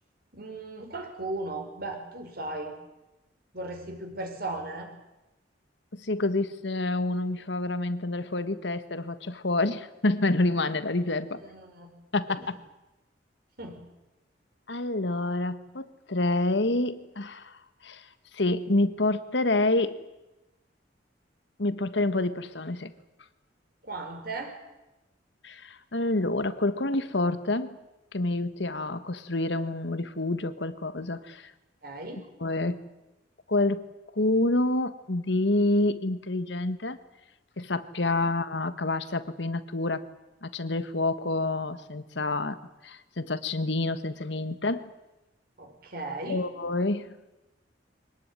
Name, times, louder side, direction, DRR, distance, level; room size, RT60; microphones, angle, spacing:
voice 1, 0.3-2.7 3.5-4.9 11.3-11.9 12.4-12.5 13.6-13.9 23.8-24.5 31.8-32.3 45.6-46.5, right 2 dB, 55° right, 4 dB, 5.4 m, -37 dB
voice 2, 5.9-11.4 12.1-12.6 14.7-18.0 18.3-20.0 21.6-22.9 25.4-27.8 28.1-31.5 32.4-32.8 33.5-33.9 34.1-37.0 37.6-40.0 40.4-42.6 42.8-44.9 46.3-47.2, left 2 dB, 65° left, 13 dB, 1.5 m, -28 dB
24.0 x 18.5 x 9.9 m, 1.0 s
head